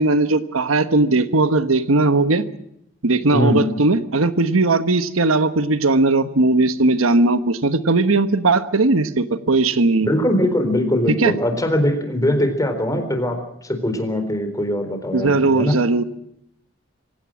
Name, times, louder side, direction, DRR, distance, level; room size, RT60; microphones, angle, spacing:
voice 1, 0.0-2.4 3.0-10.1 11.1-11.3 15.1-16.0, right 2 dB, 90° right, 11 dB, 1.3 m, -18 dB
voice 2, 10.0-15.7, left 1 dB, 15° left, 7 dB, 3.9 m, -21 dB
26.0 x 16.5 x 7.4 m, 0.78 s
head